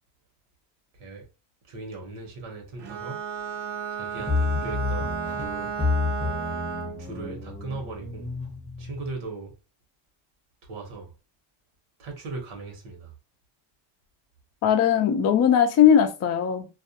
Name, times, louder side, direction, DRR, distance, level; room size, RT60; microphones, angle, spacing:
voice 1, 1.7-3.2 3.9-5.2 6.5-8.3 8.8-9.5 10.6-11.1 12.0-13.1, right 3 dB, 80° right, 1.1 m, -38 dB
Bowed string instrument, 2.8-7.1, right 7 dB, 55° right, 0.6 m, -33 dB
sound 1, 4.2-9.1, left 4 dB, 15° left, 0.8 m, -30 dB
voice 2, 14.6-16.7, left 8 dB, 35° left, 0.4 m, -19 dB
2.4 x 2.2 x 2.7 m
cardioid pair, 125°, 50 cm